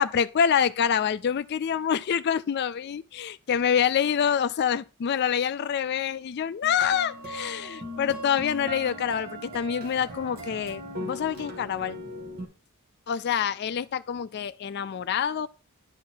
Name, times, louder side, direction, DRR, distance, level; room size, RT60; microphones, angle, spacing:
voice 1, 0.0-12.0 13.1-15.5, left 8 dB, 50° left, 0.3 m, -26 dB
sound 1, 6.6-12.4, equal, 45° right, 1.8 m, -38 dB
10.5 x 4.0 x 4.4 m
head